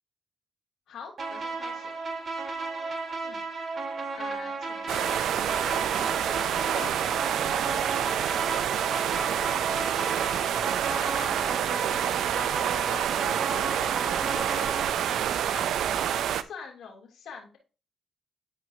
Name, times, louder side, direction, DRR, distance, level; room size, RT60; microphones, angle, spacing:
voice 1, 0.9-1.9 3.2-3.7 4.1-5.1 5.4-8.3 8.8-9.6 10.1-10.4 10.6-12.0 12.3-12.6 12.9-14.7 15.0-17.6, left 6 dB, 75° left, 0 dB, 3.0 m, -46 dB
sound 1, 1.2-14.9, right 4 dB, 50° right, 2.1 m, -34 dB
sound 2, 4.9-16.4, right 10 dB, 80° right, 0.5 m, -28 dB
12.0 x 4.8 x 2.8 m, 0.33 s
cardioid pair, 70°, 0 cm